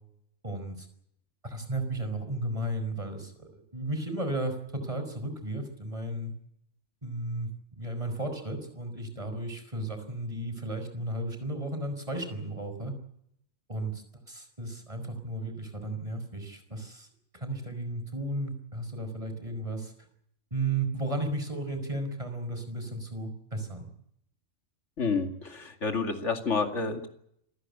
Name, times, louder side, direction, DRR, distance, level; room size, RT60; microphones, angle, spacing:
voice 1, 0.4-0.9 1.4-6.3 7.0-7.5 7.8-12.9 13.7-17.1 17.3-19.9 20.5-23.9, right 2 dB, 25° right, 7 dB, 5.1 m, -34 dB
voice 2, 25.0-27.1, left 4 dB, 70° left, 5 dB, 2.7 m, -29 dB
27.5 x 14.5 x 9.9 m, 0.74 s
omnidirectional pair, 1.3 m